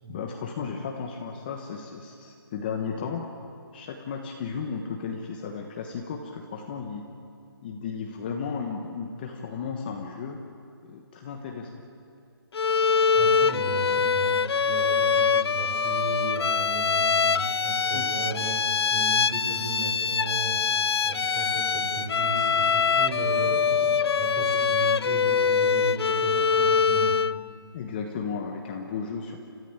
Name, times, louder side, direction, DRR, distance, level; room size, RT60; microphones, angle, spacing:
voice 1, 0.1-3.3 3.7-7.0 7.6-10.4 10.8-11.7 17.9-18.0 27.7-29.4, left 5 dB, 20° left, 2 dB, 1.1 m, -34 dB
Bowed string instrument, 12.5-27.4, left 6 dB, 75° left, 0.6 m, -24 dB
voice 2, 13.1-18.6 18.9-20.6 21.0-27.1, right 3 dB, 25° right, 0 dB, 4.6 m, -35 dB
30.0 x 14.0 x 8.9 m, 2.4 s
hypercardioid pair, 170°, 13 cm